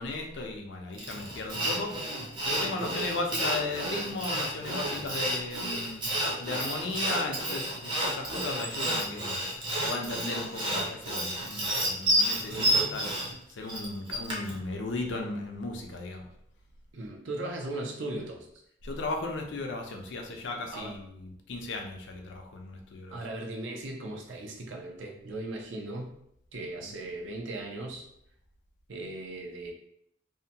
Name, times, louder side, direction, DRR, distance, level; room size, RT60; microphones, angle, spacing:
voice 1, 0.0-1.9 2.4-6.0 6.4-9.5 9.9-13.1 13.5-16.3 18.8-23.2 26.8-27.0, left 2 dB, 75° left, 2 dB, 0.5 m, -36 dB
Sawing, 1.0-14.6, right 1 dB, 25° right, 0.5 m, -30 dB
voice 2, 12.5-12.9 16.9-18.5 20.7-20.9 23.1-26.2 26.5-28.1 28.9-29.7, right 2 dB, 85° right, 1 dB, 0.6 m, -37 dB
2.7 x 2.1 x 2.7 m, 0.73 s
head